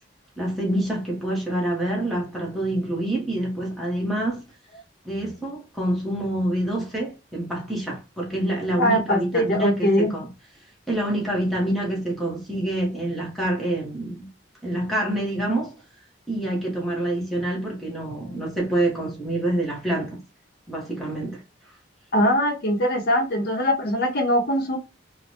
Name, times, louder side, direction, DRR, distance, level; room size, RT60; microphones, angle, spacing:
voice 1, 0.4-4.4 5.0-10.3 10.9-14.3 14.6-15.7 16.3-20.2 20.7-21.4, right 1 dB, ahead, 0.9 m, -26 dB
voice 2, 8.8-10.1 22.1-24.8, equal, 60° left, 0.7 m, -21 dB
3.2 x 2.1 x 2.7 m
head